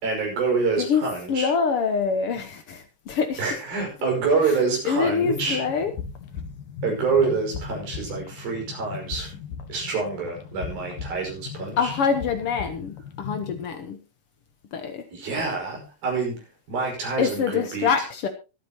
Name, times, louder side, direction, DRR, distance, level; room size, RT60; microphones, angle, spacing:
voice 1, 0.0-1.5 3.4-5.6 6.8-9.3 9.7-11.9 15.1-17.9, right 4 dB, 70° right, 1 dB, 7.4 m, -26 dB
voice 2, 1.3-3.4 4.8-5.9 11.8-14.0 14.7-15.0 17.2-18.3, left 6 dB, 85° left, 7 dB, 1.2 m, -25 dB
sound 1, 5.2-13.7, left 7 dB, 65° left, 3.1 m, -38 dB
24.0 x 9.0 x 2.9 m, 0.30 s
omnidirectional pair, 4.4 m